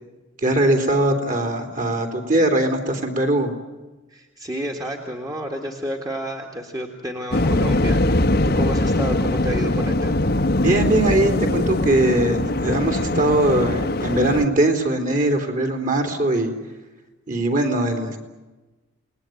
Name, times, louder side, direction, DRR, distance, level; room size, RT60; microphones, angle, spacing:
voice 1, 0.4-3.5 10.6-16.5 17.3-18.2, right 1 dB, 40° right, 5 dB, 3.5 m, -21 dB
voice 2, 4.1-10.2, equal, 20° right, 1 dB, 2.0 m, -30 dB
Waves surf, 7.3-14.5, left 1 dB, 50° left, 1.1 m, -21 dB
28.5 x 19.5 x 9.3 m, 1.1 s
head